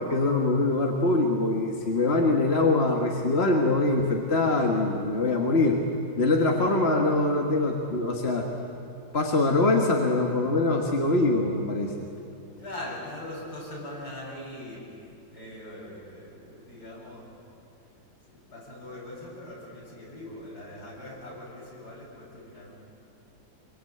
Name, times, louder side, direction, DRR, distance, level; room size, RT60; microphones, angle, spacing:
voice 1, 0.0-5.8 6.2-8.5 9.1-12.1, left 2 dB, 35° left, 1 dB, 1.7 m, -23 dB
voice 2, 12.6-14.8 15.3-17.3 18.3-22.7, left 1 dB, 50° left, -5 dB, 8.3 m, -41 dB
25.5 x 24.0 x 8.7 m, 2.6 s
omnidirectional pair, 2.1 m